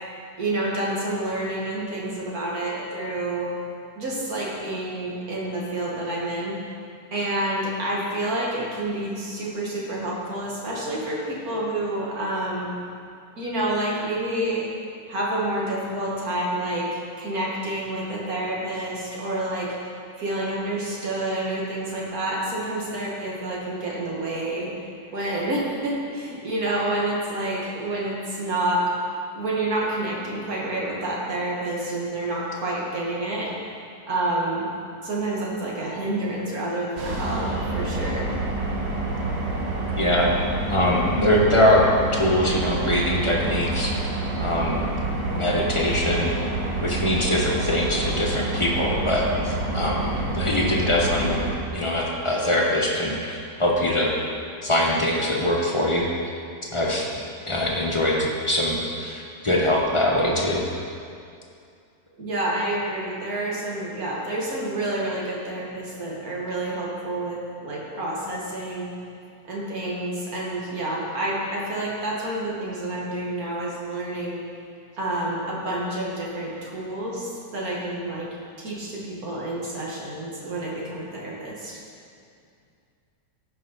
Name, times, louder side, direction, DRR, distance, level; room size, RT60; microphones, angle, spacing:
voice 1, 0.4-3.5 4.0-6.6 7.1-12.7 13.4-14.7 15.1-16.9 17.2-19.7 20.2-24.7 25.1-28.9 29.3-33.5 34.1-34.7 35.0-38.3 62.2-68.9 69.5-74.4 75.0-78.3 78.6-81.8, right 1 dB, 55° right, -4 dB, 2.1 m, -28 dB
sound 1, 37.0-51.5, right 2 dB, 40° right, 1.3 m, -28 dB
voice 2, 39.9-40.3 40.7-41.8 42.1-43.9 44.4-44.9 45.2-46.3 46.8-51.4 51.7-54.1 54.6-56.1 56.7-57.1 57.5-60.6, left 1 dB, 25° left, -3 dB, 0.8 m, -23 dB
14.5 x 5.3 x 4.0 m, 2.4 s
omnidirectional pair, 1.9 m